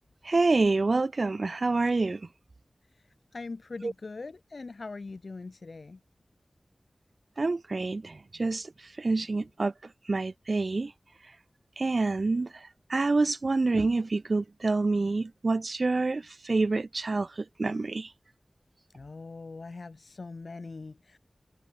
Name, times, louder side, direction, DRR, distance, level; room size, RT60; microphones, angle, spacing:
voice 1, 0.2-2.3 3.8-3.9 7.4-8.7 9.0-9.7 10.1-10.9 11.8-18.1, right 3 dB, 60° right, 0.8 m, -27 dB
voice 2, 3.0-6.0 18.9-21.2, left 3 dB, 70° left, 5.9 m, -42 dB
wide cardioid pair, 80°, 0 cm